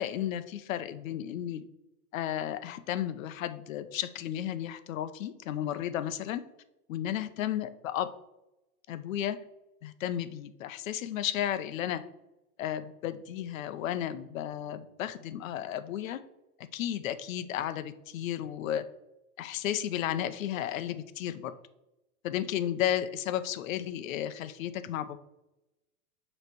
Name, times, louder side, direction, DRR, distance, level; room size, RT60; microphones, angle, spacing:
voice 1, 0.0-1.6 2.1-6.4 6.9-8.1 8.9-9.4 9.8-12.0 12.6-16.2 16.7-18.8 19.4-21.5 22.2-25.2, left 11 dB, 65° left, 11 dB, 0.8 m, -33 dB
6.9 x 3.3 x 6.1 m, 0.91 s
supercardioid pair, 150°, 43 cm